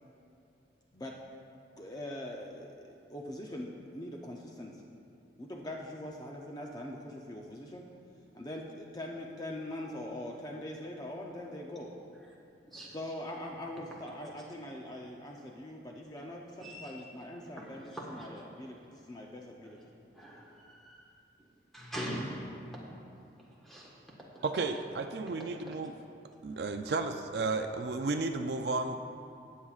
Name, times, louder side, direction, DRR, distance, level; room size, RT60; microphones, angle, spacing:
voice 1, 1.8-2.7 3.1-4.8 5.4-7.9 8.3-11.9 12.9-19.8, left 1 dB, 20° left, 0 dB, 0.6 m, -42 dB
voice 2, 16.6-16.9 17.6-18.4 19.6-19.7 20.1-21.1 21.7-22.8 23.6-23.9 24.3-24.4 25.5-25.6, equal, ahead, -4 dB, 1.4 m, -42 dB
voice 3, 24.4-25.9 26.4-29.0, right 3 dB, 60° right, 6 dB, 0.4 m, -33 dB
18.0 x 7.3 x 2.4 m, 2.7 s
head